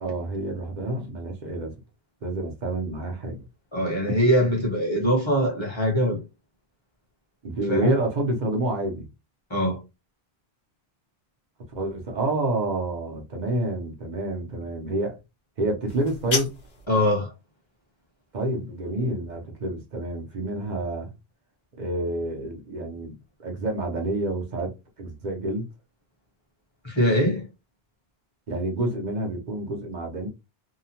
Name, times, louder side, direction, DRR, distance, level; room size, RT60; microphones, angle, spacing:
voice 1, 0.0-1.7 2.2-3.4 7.4-9.0 11.7-15.2 15.6-16.5 18.3-21.1 21.8-24.7 25.0-25.6 28.5-30.3, right 1 dB, 50° right, 0.8 m, -28 dB
voice 2, 3.7-6.2 7.7-8.0 9.5-9.8 16.9-17.3 26.8-27.4, equal, 30° left, 1.0 m, -22 dB
sound 1, 15.9-16.9, left 4 dB, 55° left, 1.0 m, -31 dB
2.8 x 2.2 x 2.8 m
omnidirectional pair, 1.0 m